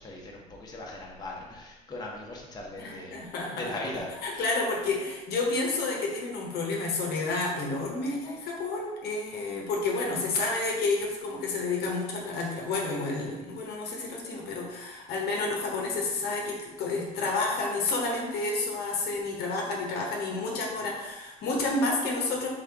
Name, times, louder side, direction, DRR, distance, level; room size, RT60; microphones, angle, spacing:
voice 1, 0.0-3.2 3.5-4.1, left 1 dB, 20° left, -2 dB, 1.0 m, -39 dB
voice 2, 2.8-3.7 4.2-22.5, left 3 dB, 60° left, -1 dB, 1.0 m, -30 dB
3.6 x 3.5 x 3.5 m, 1.1 s
supercardioid pair, 85°, 19 cm